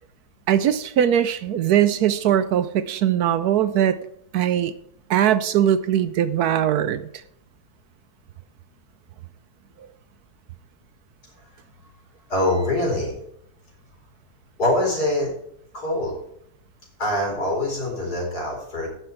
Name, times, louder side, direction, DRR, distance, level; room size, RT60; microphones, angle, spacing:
voice 1, 0.5-4.0 4.3-4.7 5.1-7.1, right 10 dB, 70° right, 13 dB, 1.1 m, -20 dB
voice 2, 12.3-13.2 14.6-15.3 15.7-16.1 17.0-18.9, left 1 dB, 65° left, -1 dB, 4.9 m, -24 dB
16.0 x 6.8 x 4.6 m, 0.72 s
omnidirectional pair, 1.8 m